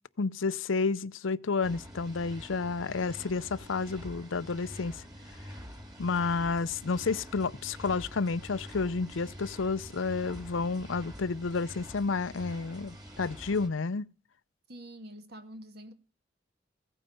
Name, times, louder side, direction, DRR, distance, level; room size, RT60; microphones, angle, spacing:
voice 1, 0.2-5.0 6.0-14.1, left 4 dB, 75° left, 0.6 m, -31 dB
sound 1, 1.6-13.7, equal, 20° right, 3.2 m, -46 dB
voice 2, 14.7-15.9, equal, 55° right, 1.7 m, -46 dB
15.5 x 9.2 x 6.9 m
head